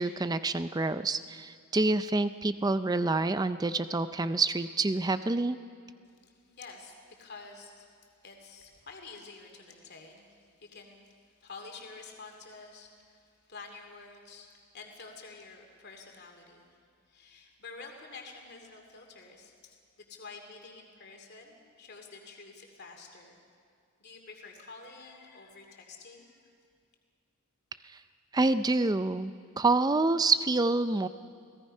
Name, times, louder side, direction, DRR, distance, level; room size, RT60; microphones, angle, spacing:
voice 1, 0.0-5.6 28.3-31.1, right 3 dB, 15° right, 12 dB, 0.4 m, -27 dB
voice 2, 6.0-7.9 8.2-11.1 11.4-16.7 17.1-23.4 24.0-26.4, left 4 dB, 50° left, 3 dB, 2.7 m, -49 dB
28.5 x 18.5 x 5.5 m, 2.3 s
head